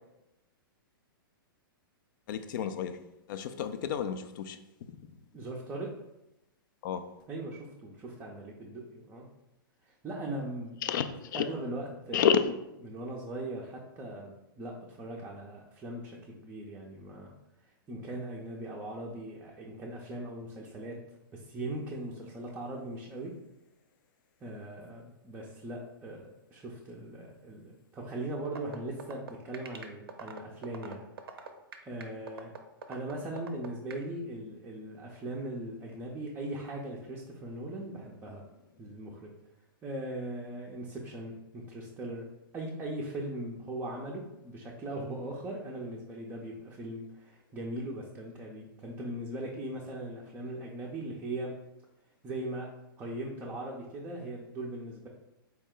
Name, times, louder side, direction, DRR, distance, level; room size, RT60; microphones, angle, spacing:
voice 1, 2.3-3.0 3.3-5.1 6.8-7.0 10.8-11.5 12.1-12.7, left 7 dB, 60° left, 10 dB, 0.4 m, -30 dB
voice 2, 5.3-5.9 7.3-9.3 9.8-10.8 11.3-12.2 12.8-17.3 17.9-21.0 21.3-23.3 24.4-31.0 31.8-32.5 32.9-38.4 38.8-39.3 39.8-42.2 42.5-51.5 52.2-52.7 53.0-55.1, right 1 dB, 15° right, -3 dB, 0.4 m, -39 dB
sound 1, 28.4-34.0, right 6 dB, 85° right, 0.5 m, -43 dB
4.2 x 2.1 x 3.7 m, 0.90 s
hypercardioid pair, 130°, 12 cm